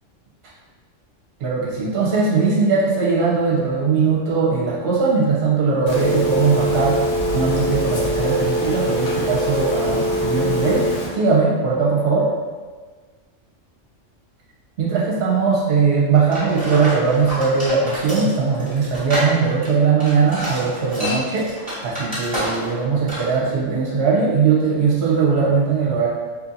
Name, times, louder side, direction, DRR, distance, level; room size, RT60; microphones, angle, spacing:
voice 1, 1.4-7.0 7.3-10.8 11.1-12.3 14.8-26.1, right 5 dB, 60° right, -5 dB, 0.8 m, -19 dB
Telephone, 5.9-11.1, equal, 75° left, 1.0 m, -22 dB
sound 1, 16.3-22.8 23.1-23.3, equal, 20° right, 1.0 m, -28 dB
2.8 x 2.6 x 2.5 m, 1.4 s
omnidirectional pair, 1.3 m